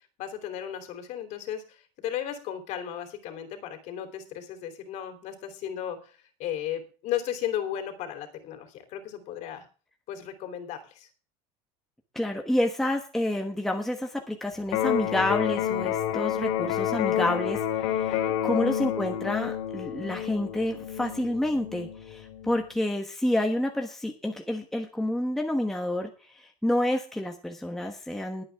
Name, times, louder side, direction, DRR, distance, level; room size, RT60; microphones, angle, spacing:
voice 1, 0.2-9.6 10.1-11.1 18.1-18.4, left 10 dB, 45° left, 7 dB, 3.2 m, -35 dB
voice 2, 12.1-17.6 17.9-18.2 18.4-28.4, left 1 dB, ahead, 3 dB, 1.2 m, -29 dB
Electric guitar, 14.7-22.7, left 11 dB, 70° left, 2.6 m, -29 dB
21.0 x 8.8 x 3.5 m, 0.37 s
cardioid pair, 170°, 16 cm